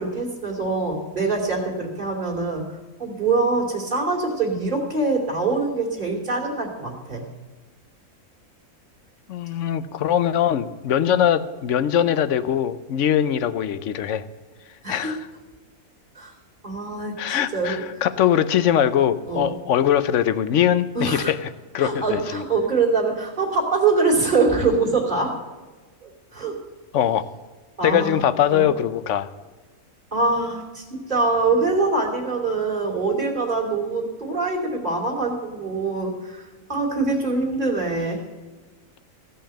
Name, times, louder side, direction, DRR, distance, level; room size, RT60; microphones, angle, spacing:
voice 1, 0.0-2.6 3.0-7.2 14.8-15.1 16.2-16.3 16.6-18.0 19.3-19.5 20.9-21.3 21.8-25.3 26.0-26.6 27.8-28.2 28.5-28.7 30.1-36.4 36.7-38.2, right 3 dB, 35° right, -1 dB, 2.8 m, -24 dB
voice 2, 9.3-14.3 14.9-15.2 17.2-22.4 26.9-27.3 27.8-29.3, left 9 dB, 60° left, 14 dB, 0.9 m, -22 dB
15.5 x 5.7 x 8.7 m, 1.3 s
omnidirectional pair, 1.5 m